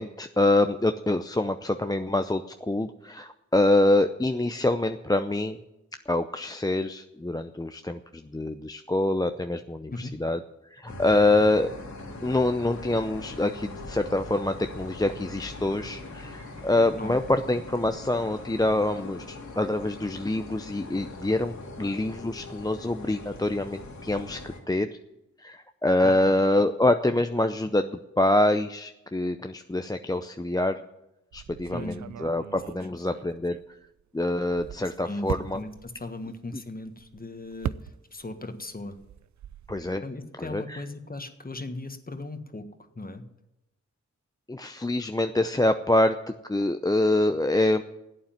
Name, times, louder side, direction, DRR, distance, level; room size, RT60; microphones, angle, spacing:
voice 1, 0.0-5.6 6.1-10.4 10.7-11.7 12.2-24.9 25.4-30.8 31.3-33.6 34.1-35.6 39.7-40.0 40.4-40.8 44.5-46.1 46.5-47.8, left 2 dB, 15° left, 7 dB, 0.6 m, -25 dB
sound 1, 10.9-24.6, left 2 dB, 75° left, 2.6 m, -41 dB
voice 2, 26.0-26.4 31.7-32.1 32.8-32.9 35.0-37.8 38.1-39.0 40.0-42.7 42.9-43.2, left 2 dB, 30° left, 8 dB, 1.5 m, -37 dB
sound 2, 31.3-34.0 34.4-38.4 38.7-40.0, right 10 dB, 70° right, 0.5 m, -39 dB
11.5 x 8.6 x 9.2 m, 0.92 s
cardioid pair, 60°, 29 cm